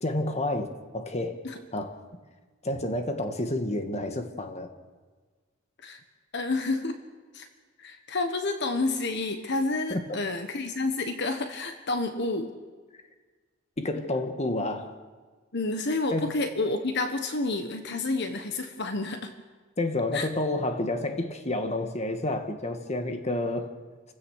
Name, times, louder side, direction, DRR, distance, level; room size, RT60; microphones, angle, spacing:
voice 1, 0.0-1.4 1.7-2.0 2.6-4.7 9.9-10.0 13.8-14.9 16.1-16.4 19.8-23.7, left 2 dB, 35° left, 6 dB, 1.6 m, -30 dB
voice 2, 6.3-7.0 7.3-7.5 7.8-12.5 15.5-19.3 20.1-20.3, left 2 dB, 55° left, 7 dB, 1.3 m, -29 dB
28.5 x 16.0 x 6.5 m, 1.4 s
head